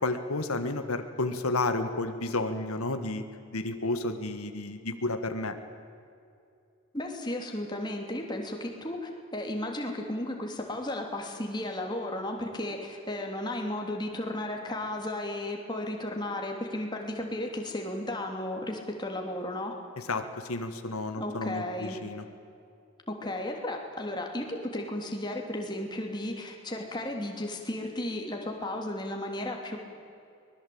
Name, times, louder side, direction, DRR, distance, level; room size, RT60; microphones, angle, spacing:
voice 1, 0.0-3.2 3.5-5.6 20.0-22.2, left 2 dB, 85° left, 8 dB, 1.7 m, -31 dB
voice 2, 6.9-19.7 21.2-22.0 23.1-29.8, left 1 dB, 20° left, 2 dB, 3.0 m, -34 dB
24.0 x 20.5 x 8.7 m, 2.5 s
head